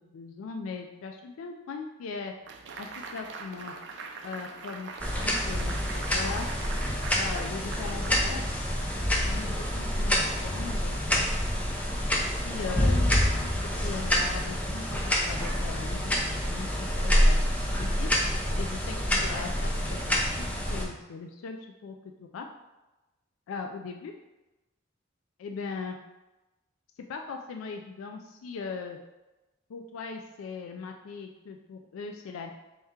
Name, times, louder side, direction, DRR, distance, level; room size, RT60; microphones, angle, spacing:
voice 1, 0.1-2.3 2.8-3.7 4.2-5.8 6.1-6.5 7.1-8.5 9.2-11.3 12.3-13.5 13.8-16.7 17.0-17.4 17.8-18.1 18.6-22.0 22.3-22.5 23.5-24.1 25.4-26.0 27.1-29.0 29.7-32.5, left 5 dB, 90° left, 4 dB, 0.3 m, -39 dB
sound 1, 2.5-8.9, right 4 dB, 60° right, 0.4 m, -42 dB
sound 2, 5.0-20.9, equal, 5° left, 0.4 m, -27 dB
4.3 x 2.8 x 3.6 m, 1.1 s
head